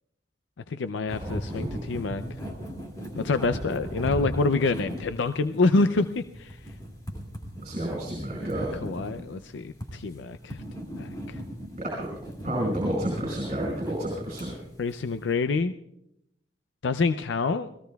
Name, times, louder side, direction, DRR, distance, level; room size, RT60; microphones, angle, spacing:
voice 1, 0.7-2.2 3.2-6.6 8.8-10.6 11.0-11.4 14.8-15.7 16.8-17.7, left 3 dB, 85° left, 11 dB, 0.5 m, -27 dB
sound 1, 1.1-15.4, equal, 20° left, 2.4 m, -38 dB
voice 2, 1.2-1.8 7.6-8.7 11.8-12.1 12.4-14.5, right 1 dB, 40° right, -3 dB, 4.8 m, -30 dB
29.5 x 18.5 x 2.3 m, 0.81 s
head